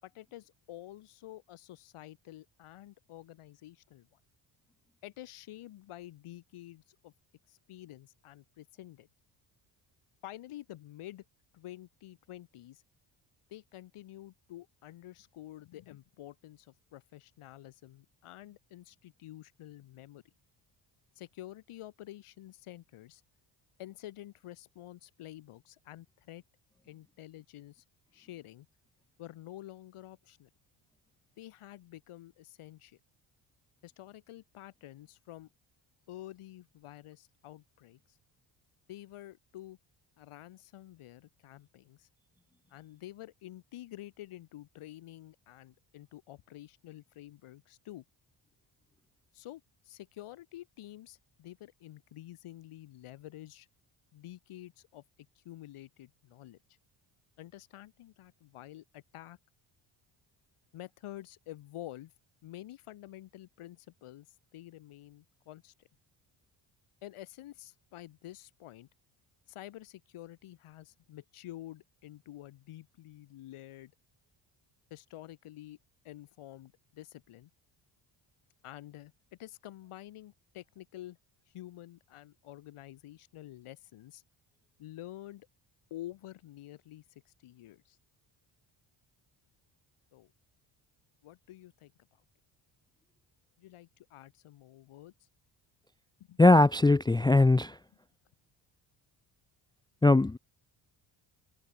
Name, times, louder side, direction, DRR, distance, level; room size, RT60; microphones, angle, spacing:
voice 1, 0.0-4.2 5.0-7.1 7.5-9.1 10.2-11.2 11.5-12.8 13.5-20.2 21.1-23.2 23.8-26.4 26.8-27.8 28.1-28.7 29.2-30.5 31.4-33.0 33.8-35.5 36.1-38.2 38.9-39.8 40.2-42.1 42.7-48.0 49.3-53.7 54.1-55.0 55.3-56.6 57.4-59.4 60.7-62.1 62.4-65.9 67.0-68.9 69.5-73.9 74.9-75.8 76.0-77.5 78.6-79.1 79.4-81.2 81.5-84.2 84.8-85.5 85.9-88.0 90.1-90.3 91.2-91.9 93.6-95.3 96.3-96.4, left 14 dB, 85° left, 6.2 m, -49 dB
voice 2, 96.4-97.7 100.0-100.4, left 2 dB, 10° left, 0.5 m, -20 dB
cardioid pair, 120°, 49 cm